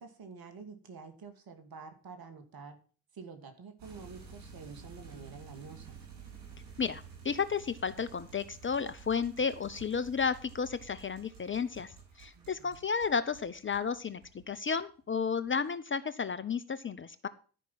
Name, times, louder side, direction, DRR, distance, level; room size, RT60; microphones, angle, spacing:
voice 1, 0.0-2.8 3.1-6.0 12.3-12.7, right 5 dB, 50° right, 7 dB, 2.6 m, -48 dB
sound 1, 3.8-14.7 15.1-15.7, right 6 dB, 70° right, 5.6 m, -52 dB
voice 2, 6.8-14.2 14.5-17.3, left 6 dB, 25° left, 12 dB, 0.7 m, -32 dB
12.5 x 5.4 x 7.4 m, 0.38 s
figure-of-eight pair, 40°, 45 cm